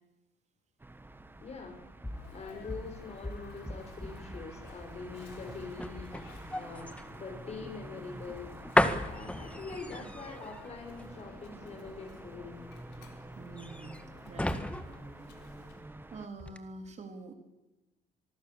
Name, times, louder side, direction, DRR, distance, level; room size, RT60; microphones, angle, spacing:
sound 1, 0.8-16.3, right 2 dB, 10° right, 1.3 m, -49 dB
voice 1, 1.4-1.8 2.3-6.1 6.5-8.6 9.1-12.7, left 4 dB, 40° left, 5 dB, 6.3 m, -44 dB
sound 2, 1.6-16.0 16.4-16.6, left 1 dB, 5° left, 1.7 m, -36 dB
Sneeze, 2.1-15.9, left 8 dB, 90° left, 4.0 m, -56 dB
voice 2, 13.3-14.7 15.3-15.5 16.1-17.3, right 3 dB, 40° right, 5 dB, 3.6 m, -46 dB
25.5 x 20.0 x 7.2 m, 1.0 s
cardioid pair, 110°, 17 cm